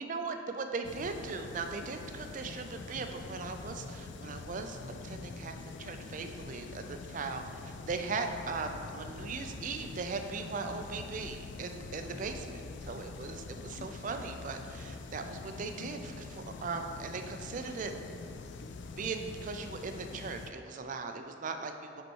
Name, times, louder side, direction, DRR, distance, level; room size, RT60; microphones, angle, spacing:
voice 1, 0.0-17.9 19.0-22.0, right 4 dB, 40° right, 6 dB, 0.4 m, -39 dB
sound 1, 0.8-20.5, left 3 dB, 65° left, 0.3 m, -45 dB
5.3 x 4.4 x 4.5 m, 2.6 s
head